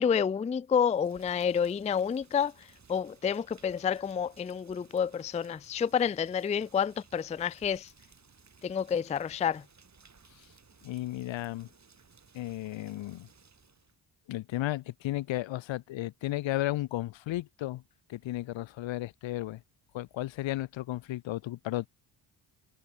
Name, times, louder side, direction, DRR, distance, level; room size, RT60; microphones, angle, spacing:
voice 1, 0.0-2.5 2.9-7.9 8.6-9.6, left 7 dB, 15° left, 0.3 m, -29 dB
Rain, 0.8-14.0, right 5 dB, 35° right, 4.8 m, -60 dB
voice 2, 10.8-11.7 12.3-13.3 14.3-17.8 18.1-19.6 19.9-21.9, left 15 dB, 70° left, 0.7 m, -34 dB
cardioid pair, 85°, 48 cm